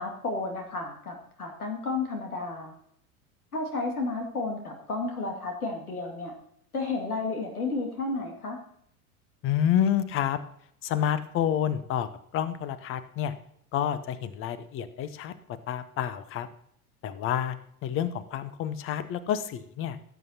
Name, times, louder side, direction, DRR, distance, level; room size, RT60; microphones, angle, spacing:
voice 1, 0.0-2.7 3.5-6.3 6.7-8.6, left 3 dB, 75° left, 3 dB, 2.4 m, -32 dB
voice 2, 9.4-10.4 10.8-13.3 13.7-15.3 15.7-16.5 17.0-17.6 17.8-20.0, left 10 dB, 30° left, 15 dB, 0.8 m, -29 dB
17.0 x 8.1 x 2.9 m, 0.69 s
figure-of-eight pair, 85°, 45 cm